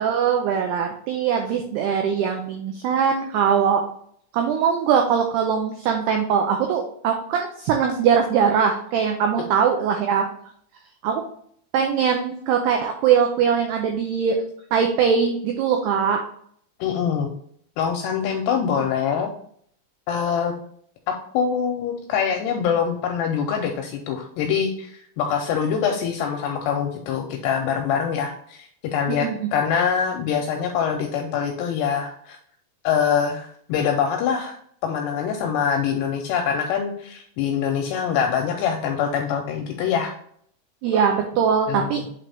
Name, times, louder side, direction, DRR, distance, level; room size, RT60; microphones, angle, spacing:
voice 1, 0.0-3.8 4.3-10.3 11.0-11.2 11.7-14.4 14.7-16.2 29.1-29.5 40.8-42.0, right 7 dB, 90° right, 3 dB, 2.3 m, -21 dB
voice 2, 16.8-17.3 17.8-19.3 20.1-20.5 21.1-32.4 32.8-34.6 34.8-40.1 41.7-42.1, left 7 dB, 80° left, 3 dB, 2.5 m, -24 dB
8.5 x 3.9 x 3.5 m, 0.63 s
omnidirectional pair, 5.5 m